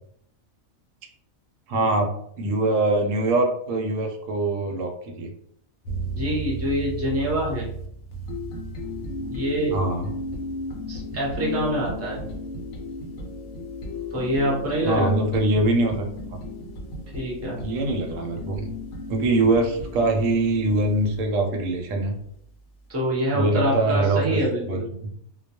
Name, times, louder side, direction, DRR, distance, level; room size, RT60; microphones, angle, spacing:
voice 1, 1.7-2.1 2.4-5.3 9.7-10.1 14.8-16.0 17.6-18.7 19.1-22.2 23.3-25.1, right 2 dB, 75° right, 2 dB, 0.9 m, -23 dB
sound 1, 5.9-21.2, left 1 dB, 65° left, 0.8 m, -34 dB
voice 2, 6.1-7.7 9.3-9.8 10.9-12.2 14.1-15.1 17.1-17.6 22.9-24.8, right 1 dB, 15° right, -4 dB, 0.5 m, -25 dB
2.2 x 2.2 x 2.8 m, 0.68 s
omnidirectional pair, 1.4 m